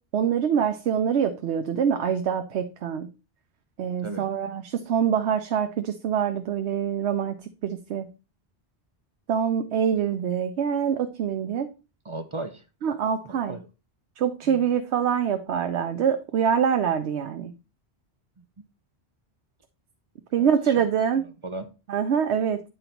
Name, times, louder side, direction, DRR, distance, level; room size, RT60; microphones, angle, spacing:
voice 1, 0.1-3.1 3.8-8.1 9.3-11.7 12.8-13.6 14.2-17.5 20.3-21.2 21.9-22.6, right 8 dB, 85° right, 1.0 m, -25 dB
voice 2, 12.0-12.6 13.2-13.7 14.4-14.6 18.4-18.5 20.4-20.9 21.2-21.7, right 2 dB, 35° right, 0.6 m, -37 dB
9.2 x 4.0 x 4.3 m
omnidirectional pair, 1.1 m